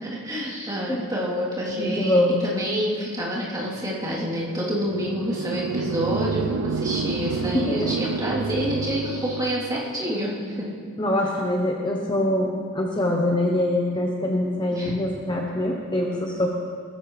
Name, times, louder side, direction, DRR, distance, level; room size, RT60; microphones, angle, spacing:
voice 1, 0.0-10.7 14.7-14.9, equal, 20° right, -8 dB, 3.2 m, -28 dB
voice 2, 1.7-2.4 7.5-7.9 11.0-16.5, left 1 dB, 20° left, 0 dB, 0.8 m, -24 dB
sound 1, 4.8-9.7, right 5 dB, 90° right, 0.5 m, -29 dB
18.0 x 14.0 x 3.3 m, 2.1 s
head